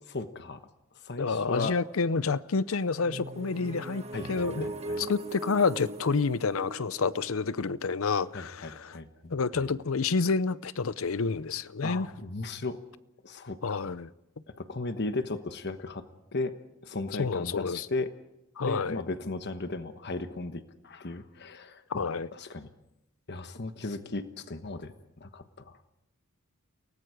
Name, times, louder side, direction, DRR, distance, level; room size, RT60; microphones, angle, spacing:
voice 1, 0.1-0.6 1.0-1.8 4.1-5.1 8.3-9.7 11.8-12.8 13.2-13.9 14.6-16.0 16.3-16.5 16.8-18.1 18.6-22.7 23.3-25.8, left 2 dB, 50° left, 1.2 m, -36 dB
voice 2, 1.2-4.0 4.3-9.0 9.3-12.1 13.6-14.1 17.2-17.9 18.6-19.0 21.9-22.3, left 4 dB, 70° left, 0.6 m, -29 dB
sound 1, 3.0-8.8, right 2 dB, 30° right, 1.5 m, -40 dB
30.0 x 18.0 x 5.0 m
head